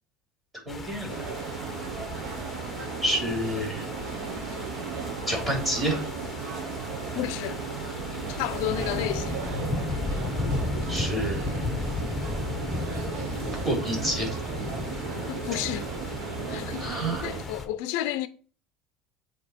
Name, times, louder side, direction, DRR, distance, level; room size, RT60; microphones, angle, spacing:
voice 1, 0.6-1.3 3.0-3.8 5.3-6.0 10.9-11.5 13.6-14.4 16.8-17.3, right 1 dB, 15° right, 3.1 m, -28 dB
sound 1, 0.7-17.7, left 2 dB, 10° left, 0.8 m, -34 dB
sound 2, 1.1-17.4, right 6 dB, 65° right, 0.9 m, -35 dB
voice 2, 7.1-7.6 8.3-9.4 15.3-15.9 16.5-18.3, left 13 dB, 75° left, 0.4 m, -31 dB
8.0 x 2.9 x 4.3 m
cardioid pair, 145°, 0 cm